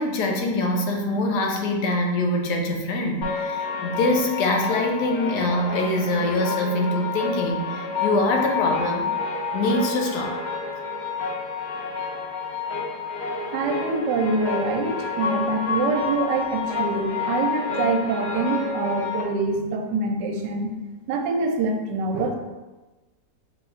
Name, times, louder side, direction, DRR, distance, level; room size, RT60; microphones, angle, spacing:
voice 1, 0.0-9.1 9.5-10.4, left 2 dB, 75° left, 2 dB, 1.1 m, -24 dB
sound 1, 3.2-19.2, left 4 dB, 55° left, 0.7 m, -29 dB
voice 2, 13.5-20.7 21.1-22.3, right 3 dB, 80° right, 4 dB, 1.2 m, -25 dB
3.8 x 2.3 x 4.2 m, 1.1 s
omnidirectional pair, 1.9 m